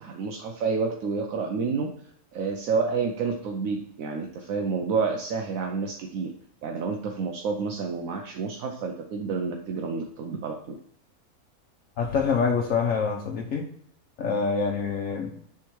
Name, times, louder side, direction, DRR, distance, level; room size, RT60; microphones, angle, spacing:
voice 1, 0.0-1.9 2.3-6.3 6.6-10.7, right 5 dB, 70° right, 2 dB, 1.1 m, -29 dB
voice 2, 12.0-13.6 14.2-15.3, left 5 dB, 65° left, 0 dB, 1.1 m, -25 dB
7.3 x 3.7 x 4.5 m, 0.69 s
omnidirectional pair, 1.5 m